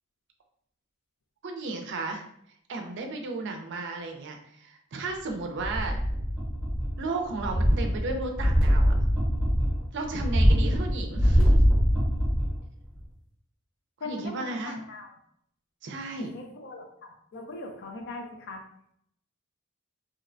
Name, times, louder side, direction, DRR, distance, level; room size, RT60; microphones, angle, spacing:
voice 1, 1.4-2.2 2.7-6.0 7.0-8.9 9.9-11.6 14.0-14.7 15.8-16.3, right 3 dB, 60° right, 3 dB, 0.4 m, -34 dB
sound 1, 5.6-7.0 7.3-12.6 13.0-13.1, equal, 10° right, 0.7 m, -23 dB
voice 2, 14.0-15.1 16.2-18.6, left 2 dB, 55° left, 2 dB, 0.5 m, -40 dB
2.6 x 2.1 x 2.5 m, 0.69 s
head